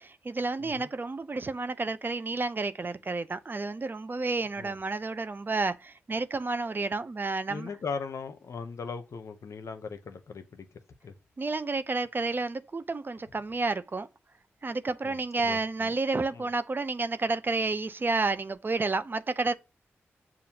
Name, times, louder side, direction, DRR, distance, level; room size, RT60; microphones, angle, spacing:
voice 1, 0.0-7.7 11.4-14.1 14.6-19.5, right 3 dB, 40° right, 0.5 m, -30 dB
voice 2, 0.6-0.9 4.6-4.7 7.5-10.7 11.0-11.1 15.0-16.0 16.3-16.5, left 5 dB, 65° left, 0.6 m, -39 dB
6.8 x 2.4 x 2.8 m
supercardioid pair, 40°, 5 cm